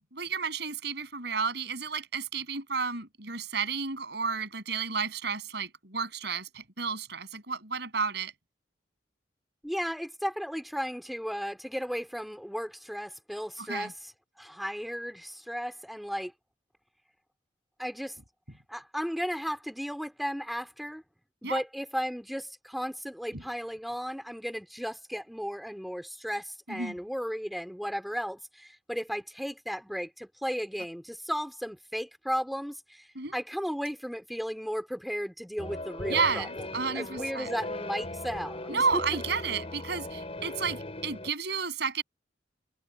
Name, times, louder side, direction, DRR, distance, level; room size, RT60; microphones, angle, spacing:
voice 1, 0.1-8.3 13.7-13.9 21.4-21.6 23.3-23.4 26.7-26.9 33.1-33.3 36.1-37.5 38.7-42.0, right 5 dB, 65° right, 7.8 m, -32 dB
voice 2, 9.6-16.3 17.8-18.2 18.7-21.0 21.4-36.7 36.9-39.0, equal, ahead, 2.9 m, -35 dB
sound 1, 35.6-41.3, left 1 dB, 35° left, 5.7 m, -38 dB
head